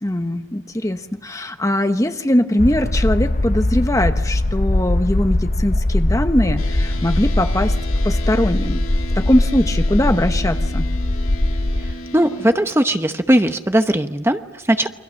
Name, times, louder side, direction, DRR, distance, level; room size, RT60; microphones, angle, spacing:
voice 1, 0.0-7.8 8.0-8.8 9.1-10.9, left 1 dB, 15° left, 8 dB, 1.0 m, -20 dB
sound 1, 2.6-11.9, left 1 dB, 40° left, 0.8 m, -20 dB
sound 2, 6.6-12.5, left 1 dB, 90° left, 3.0 m, -34 dB
voice 2, 12.1-14.9, right 1 dB, 10° right, 7 dB, 0.9 m, -18 dB
29.0 x 24.5 x 6.4 m, 1.0 s
head